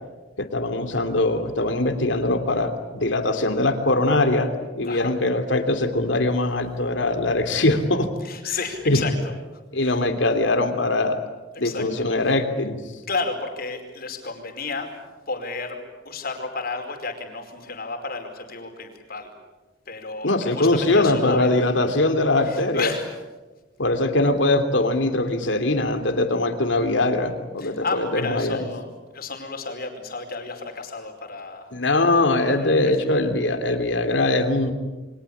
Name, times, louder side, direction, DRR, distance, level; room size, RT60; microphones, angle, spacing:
voice 1, 0.4-4.5 4.7-8.1 8.5-8.6 8.9-9.0 9.7-11.2 11.6-12.8 20.2-22.9 23.8-28.6 31.7-34.7, left 2 dB, 70° left, 7 dB, 3.1 m, -22 dB
voice 2, 8.2-9.3 9.8-10.0 11.5-12.3 13.1-14.9 15.3-19.3 19.9-21.5 22.4-23.1 27.6-28.9 29.1-31.7 32.5-33.3, left 4 dB, 50° left, 4 dB, 4.9 m, -32 dB
29.0 x 23.5 x 8.6 m, 1.2 s
head